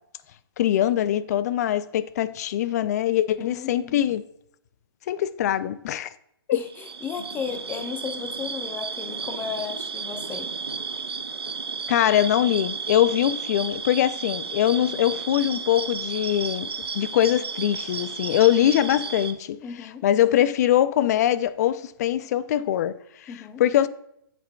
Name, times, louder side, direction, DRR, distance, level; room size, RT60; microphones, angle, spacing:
voice 1, 0.6-4.2 5.1-6.1 6.5-6.6 11.9-19.6 20.0-23.3 23.6-23.9, left 12 dB, 40° left, 0.4 m, -22 dB
voice 2, 3.4-4.0 6.5-10.5 19.6-20.0 23.3-23.6, left 6 dB, 15° left, 0.8 m, -34 dB
sound 1, 6.7-19.3, right 5 dB, 85° right, 0.8 m, -33 dB
7.6 x 7.6 x 2.2 m
hypercardioid pair, 135°, 13 cm